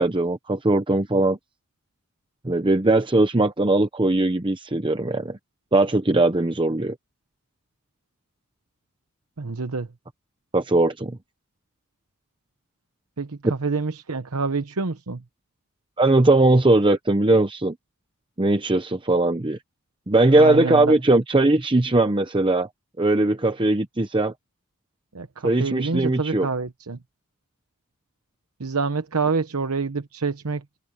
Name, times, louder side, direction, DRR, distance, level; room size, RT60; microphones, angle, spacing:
voice 1, 0.0-1.4 2.4-5.4 5.7-7.0 10.5-11.2 13.4-13.5 16.0-17.7 18.4-19.6 20.1-22.7 23.0-24.3 25.4-26.5, right 2 dB, 25° right, 0.8 m, -20 dB
voice 2, 9.4-9.9 13.2-15.2 20.3-21.0 25.1-27.0 28.6-30.6, right 4 dB, 90° right, 1.0 m, -27 dB
head